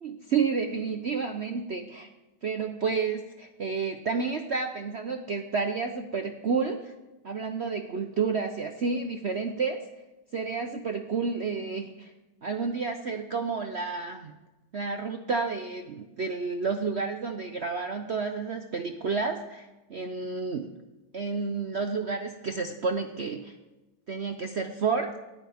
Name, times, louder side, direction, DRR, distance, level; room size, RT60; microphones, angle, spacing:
voice 1, 0.0-2.1 2.4-6.9 7.2-9.8 10.3-12.1 12.4-14.4 14.7-20.7 21.1-23.5 24.1-25.1, right 5 dB, 80° right, 5 dB, 0.6 m, -30 dB
18.5 x 13.0 x 3.5 m, 1.1 s
omnidirectional pair, 2.2 m